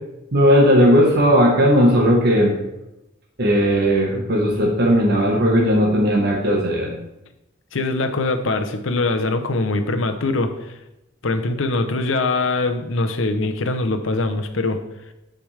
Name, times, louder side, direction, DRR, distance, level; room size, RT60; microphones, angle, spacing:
voice 1, 0.3-2.5 3.4-6.9, equal, 55° right, -2 dB, 1.2 m, -16 dB
voice 2, 7.7-10.7 11.2-14.8, left 2 dB, 70° left, 7 dB, 0.8 m, -22 dB
10.5 x 5.1 x 3.3 m, 0.91 s
head